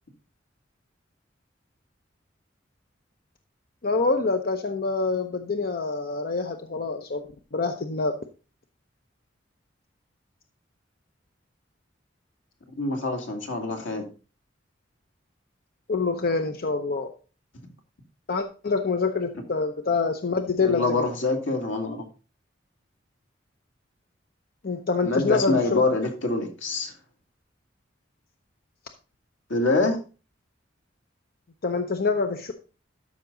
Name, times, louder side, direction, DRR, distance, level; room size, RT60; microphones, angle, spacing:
voice 1, 3.8-7.2 7.5-8.2 15.9-17.1 18.3-21.0 24.6-25.8 31.6-32.5, left 4 dB, 50° left, 6 dB, 0.7 m, -26 dB
voice 2, 12.8-14.0 20.6-22.0 25.0-26.9 29.5-30.0, left 3 dB, 85° left, 3 dB, 2.2 m, -25 dB
12.5 x 6.0 x 3.8 m, 0.34 s
head